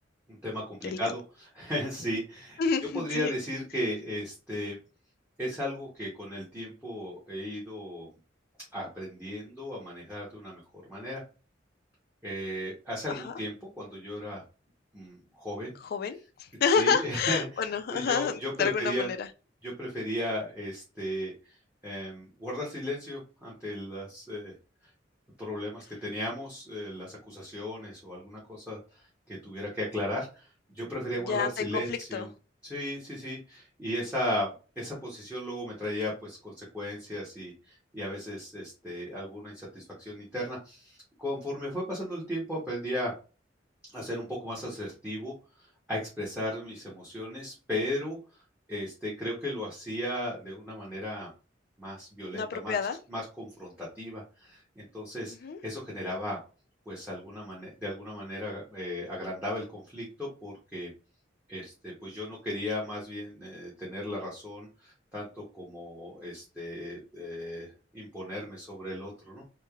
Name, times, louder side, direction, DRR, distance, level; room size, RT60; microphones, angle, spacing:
voice 1, 0.3-2.6 2.9-4.8 5.4-8.1 8.7-11.2 12.2-14.4 14.9-15.8 16.7-17.5 17.9-19.1 19.6-21.6 21.8-24.5 25.4-30.5 30.7-32.3 32.6-34.5 34.8-43.1 43.9-45.3 45.9-48.2 48.7-51.3 51.8-52.8 53.1-55.3 55.6-56.4 56.9-60.9 61.5-69.4, left 1 dB, 10° right, 0.7 m, -36 dB
voice 2, 2.6-3.3 13.1-13.3 15.8-19.3 31.3-32.3 52.3-53.0 55.4-55.6, left 6 dB, 55° left, 0.3 m, -29 dB
3.1 x 2.1 x 2.3 m
head